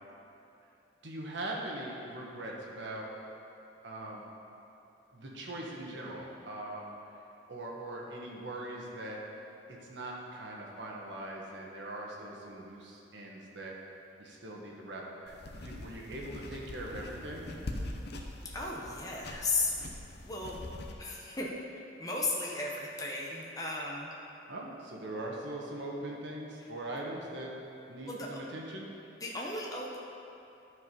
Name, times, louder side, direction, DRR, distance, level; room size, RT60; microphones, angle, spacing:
voice 1, 1.0-3.1 3.8-4.2 5.1-6.9 7.5-9.2 9.7-13.8 14.2-17.4 24.5-27.5 27.9-28.9, right 1 dB, 65° right, -2 dB, 1.4 m, -41 dB
sound 1, 15.3-20.9, left 1 dB, 60° left, 0.8 m, -43 dB
voice 2, 18.5-19.7 20.2-20.6 21.0-24.1 26.9-27.0 28.1-28.3 29.2-30.0, left 3 dB, 20° left, -3 dB, 0.8 m, -35 dB
11.5 x 4.8 x 5.4 m, 2.7 s
head